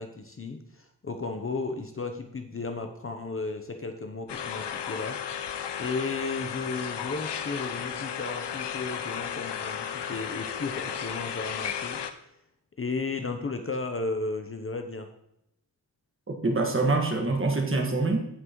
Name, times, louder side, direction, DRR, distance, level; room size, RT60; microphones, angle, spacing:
voice 1, 0.0-5.2 5.8-12.0 12.8-15.1, left 3 dB, 30° left, 6 dB, 0.7 m, -34 dB
sound 1, 4.3-12.1, left 8 dB, 75° left, 0.8 m, -34 dB
voice 2, 16.3-18.3, right 3 dB, 30° right, 2 dB, 1.6 m, -25 dB
16.0 x 6.0 x 3.0 m, 0.79 s
wide cardioid pair, 110°, 42 cm